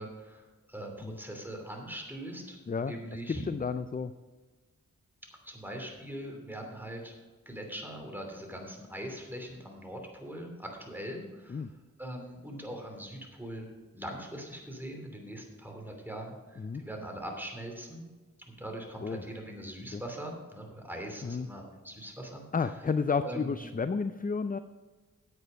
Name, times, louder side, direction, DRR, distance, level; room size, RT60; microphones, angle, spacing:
voice 1, 0.0-2.6 2.8-3.4 5.4-7.1 7.4-11.7 12.0-13.7 13.9-18.1 18.5-22.8 23.2-23.5, right 1 dB, 5° right, 2 dB, 2.9 m, -41 dB
voice 2, 3.3-4.1 11.5-11.7 16.6-16.8 19.0-19.2 19.9-20.0 21.2-21.5 22.5-24.6, left 5 dB, 25° left, 11 dB, 0.4 m, -31 dB
9.5 x 8.2 x 5.2 m, 1.3 s
cardioid pair, 40°, 32 cm